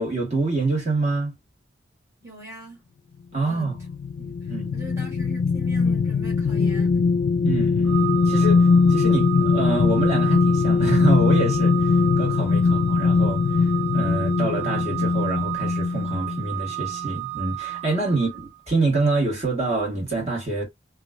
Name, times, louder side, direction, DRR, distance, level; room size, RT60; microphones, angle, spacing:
voice 1, 0.0-1.3 3.3-3.7 4.5-4.8 7.4-13.4 13.9-18.3 18.7-20.7, right 2 dB, 40° right, 1.4 m, -26 dB
voice 2, 2.2-2.8 3.3-3.7 4.2-7.1 12.6-12.7 18.1-18.3, right 1 dB, 15° right, 1.2 m, -41 dB
sound 1, 3.6-16.5 16.9-17.1, left 4 dB, 85° left, 0.4 m, -21 dB
Organ, 7.8-18.6, right 23 dB, 85° right, 0.5 m, -33 dB
2.8 x 2.3 x 2.3 m
head